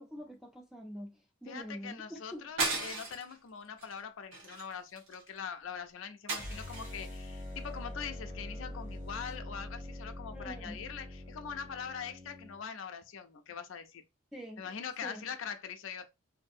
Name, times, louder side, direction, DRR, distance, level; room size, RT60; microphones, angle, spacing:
voice 1, 0.0-2.4 10.3-10.8 14.3-14.7 15.0-15.2, equal, ahead, 0.4 m, -45 dB
voice 2, 1.5-14.0 14.6-16.1, left 7 dB, 70° left, 0.4 m, -43 dB
sound 1, 2.6-3.3 3.8-4.0 4.3-5.3 6.3-7.0, right 3 dB, 70° right, 1.0 m, -35 dB
sound 2, 6.3-12.6, left 1 dB, 55° right, 1.4 m, -44 dB
2.6 x 2.6 x 2.5 m
head